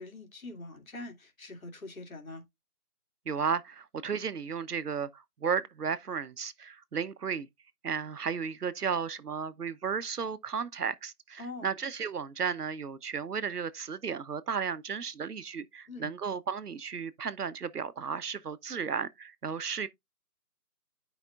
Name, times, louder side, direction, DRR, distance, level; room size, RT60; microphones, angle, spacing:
voice 1, 0.0-2.4 11.4-11.7 15.9-16.1, left 2 dB, 60° left, 2.3 m, -43 dB
voice 2, 3.3-7.5 7.8-19.9, right 6 dB, 80° right, 0.9 m, -34 dB
10.5 x 5.1 x 2.4 m
figure-of-eight pair, 175°, 46 cm